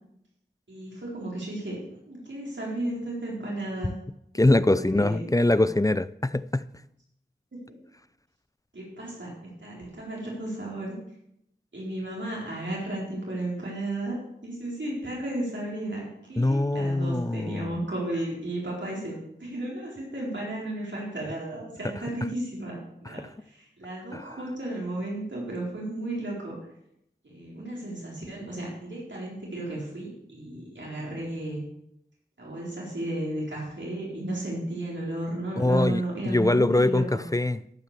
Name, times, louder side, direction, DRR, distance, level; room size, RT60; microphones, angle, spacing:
voice 1, 0.7-4.0 4.3-5.3 5.5-5.7 7.5-7.6 8.7-11.0 11.7-14.2 14.4-26.5 27.2-31.6 32.4-37.2, right 1 dB, 75° right, -4 dB, 4.2 m, -34 dB
voice 2, 4.3-6.6 16.4-17.7 24.1-24.2 35.6-37.6, left 2 dB, 20° left, 16 dB, 0.4 m, -23 dB
13.5 x 5.8 x 6.8 m, 0.77 s
wide cardioid pair, 50°, 19 cm